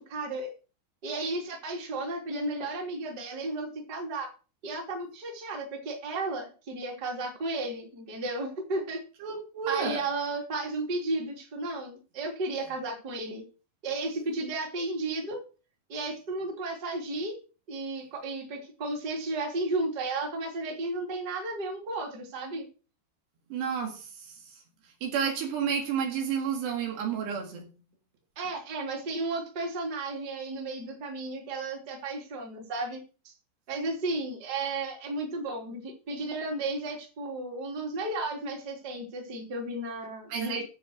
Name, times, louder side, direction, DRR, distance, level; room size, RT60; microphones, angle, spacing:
voice 1, 0.1-0.5 1.0-4.3 4.6-9.0 9.7-13.4 13.8-15.4 15.9-17.3 17.7-22.6 28.4-33.0 33.7-40.6, right 2 dB, 25° right, 2.8 m, -33 dB
voice 2, 9.2-10.0 23.5-24.6 25.0-27.7 40.3-40.6, right 7 dB, 70° right, 3.9 m, -31 dB
11.0 x 6.7 x 6.4 m
omnidirectional pair, 5.3 m